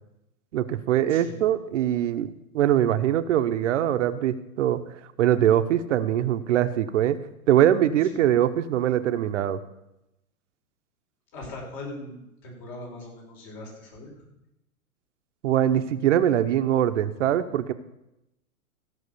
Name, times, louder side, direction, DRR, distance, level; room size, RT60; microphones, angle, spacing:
voice 1, 0.5-4.8 5.2-7.2 7.5-9.6 15.4-17.7, right 11 dB, 55° right, 10 dB, 0.9 m, -22 dB
voice 2, 1.1-1.4 8.1-8.3 11.3-14.2, left 2 dB, 45° left, -1 dB, 5.3 m, -40 dB
15.0 x 6.2 x 6.8 m, 0.88 s
hypercardioid pair, 120°, 43 cm